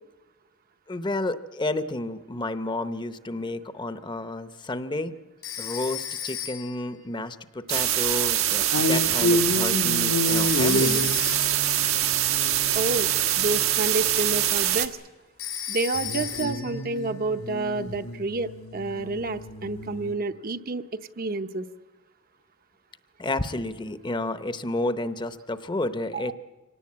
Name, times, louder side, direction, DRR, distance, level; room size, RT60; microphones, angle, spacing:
voice 1, 0.9-5.1 5.6-11.1 23.2-26.3, left 2 dB, 20° left, 12 dB, 0.7 m, -31 dB
Telephone, 5.4-6.9 10.3-11.7 15.4-16.8, left 9 dB, 90° left, 4.8 m, -34 dB
sound 1, 7.7-14.9, right 12 dB, 85° right, 1.3 m, -24 dB
sound 2, 8.7-14.4 15.9-20.1, left 1 dB, 75° left, 1.2 m, -30 dB
voice 2, 12.7-13.1 13.4-15.0 15.7-20.8 21.2-21.7 26.1-26.3, right 3 dB, 45° right, 9 dB, 0.7 m, -29 dB
25.0 x 18.0 x 8.5 m, 1.2 s
head